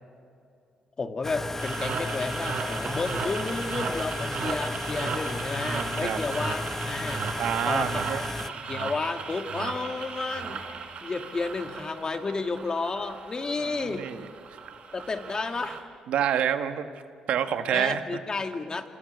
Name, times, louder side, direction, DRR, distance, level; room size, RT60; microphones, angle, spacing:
voice 1, 1.0-7.3 7.7-8.3 8.7-10.7 11.0-14.1 14.9-15.8 17.7-18.9, left 3 dB, 35° left, 6 dB, 2.2 m, -32 dB
sound 1, 1.2-8.5, left 2 dB, 15° left, 1.0 m, -34 dB
sound 2, 1.6-15.8, right 5 dB, 60° right, 3.6 m, -36 dB
voice 2, 7.4-8.2 13.6-14.2 16.1-16.8 17.3-18.0, right 9 dB, 80° right, 8 dB, 1.5 m, -27 dB
29.0 x 26.5 x 6.7 m, 2.4 s
cardioid pair, 70°, 2 cm